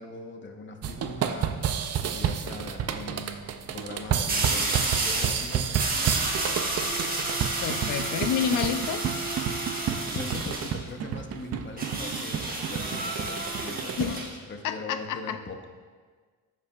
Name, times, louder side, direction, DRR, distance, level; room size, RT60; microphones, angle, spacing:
voice 1, 0.0-6.3 10.1-15.6, left 3 dB, 35° left, 4 dB, 0.9 m, -40 dB
sound 1, 0.8-14.1, right 8 dB, 45° right, 0.5 m, -31 dB
sound 2, 1.4-1.5 4.3-5.4 5.8-10.8 11.8-14.3, right 2 dB, 25° right, 1.3 m, -31 dB
voice 2, 7.6-9.1 14.0-14.2 14.6-15.4, left 8 dB, 60° left, 10 dB, 0.5 m, -29 dB
13.0 x 4.9 x 2.4 m, 1.5 s
cardioid pair, 95°, 35 cm